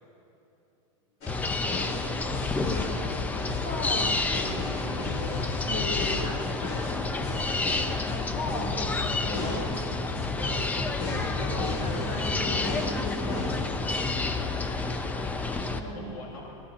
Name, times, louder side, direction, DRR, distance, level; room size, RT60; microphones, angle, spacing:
sound 1, 1.2-14.3, left 2 dB, 45° left, 3.4 m, -37 dB
sound 2, 1.3-15.8, left 3 dB, 10° left, 0.5 m, -29 dB
voice 1, 1.6-2.4 14.0-15.2 15.5-16.5, left 3 dB, 90° left, -3 dB, 1.8 m, -46 dB
voice 2, 2.6-3.0 3.6-4.2 4.5-5.2 5.6-7.4 8.1-9.8 11.4-13.5 15.6-16.3, left 1 dB, 60° left, 0 dB, 4.0 m, -37 dB
23.0 x 17.0 x 2.5 m, 2.8 s
supercardioid pair, 145°, 17 cm